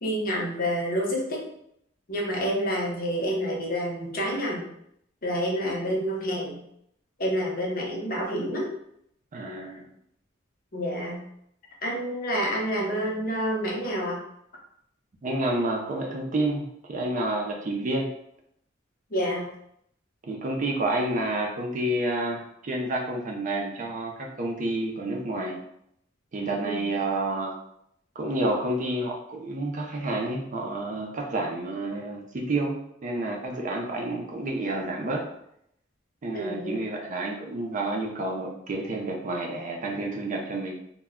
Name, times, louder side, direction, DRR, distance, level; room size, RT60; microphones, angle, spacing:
voice 1, 0.0-1.4 2.1-4.7 5.2-6.6 7.2-8.7 10.7-11.2 11.8-14.2 19.1-19.5 26.6-26.9 36.3-36.8, equal, 50° left, -2 dB, 0.7 m, -28 dB
voice 2, 9.3-9.9 15.2-18.1 20.2-25.6 26.3-27.6 28.2-35.2 36.2-40.7, right 2 dB, 40° right, 0 dB, 0.4 m, -29 dB
2.1 x 2.1 x 3.5 m, 0.73 s
head